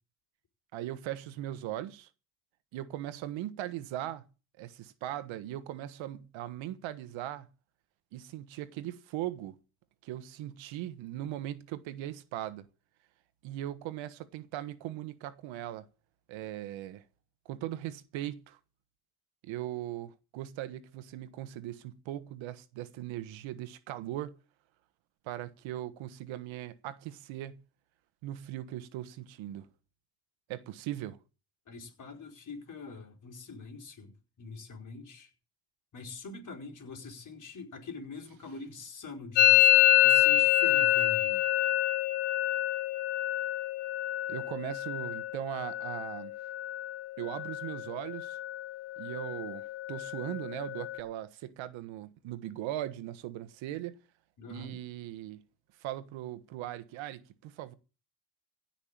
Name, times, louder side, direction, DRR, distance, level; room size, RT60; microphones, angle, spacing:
voice 1, 0.7-2.1 2.7-4.3 4.6-7.5 8.1-9.6 10.0-12.7 13.4-15.9 16.3-17.0 17.4-18.6 19.4-24.4 25.2-27.6 28.2-29.7 30.5-31.2 44.3-46.3 47.2-48.4 49.0-53.9 54.5-55.4 55.8-57.8, right 13 dB, 75° right, 1.4 m, -39 dB
voice 2, 31.7-35.3 35.9-41.4 54.4-54.8, left 4 dB, 40° left, 4.8 m, -44 dB
Musical instrument, 39.4-47.0 47.3-47.8 48.1-48.7 49.0-51.0, left 15 dB, 60° left, 1.5 m, -27 dB
16.0 x 6.0 x 8.8 m
cardioid pair, 110°, 47 cm